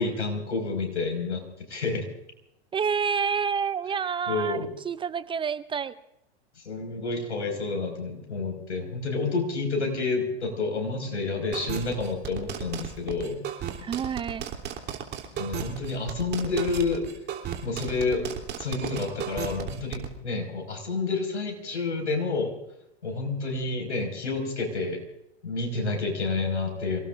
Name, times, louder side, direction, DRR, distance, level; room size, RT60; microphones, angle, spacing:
voice 1, 0.0-1.4 1.7-2.0 4.3-4.7 6.6-13.4 15.4-17.1 17.6-18.2 18.6-22.5 23.0-25.0 25.4-27.0, left 3 dB, 90° left, 4 dB, 5.4 m, -29 dB
voice 2, 2.7-4.6 4.8-6.0 13.8-14.5, right 6 dB, 15° right, 15 dB, 0.5 m, -28 dB
sound 1, 11.5-20.1, right 9 dB, 30° right, 3.3 m, -34 dB
28.5 x 19.0 x 2.6 m, 0.84 s
hypercardioid pair, 110°, 34 cm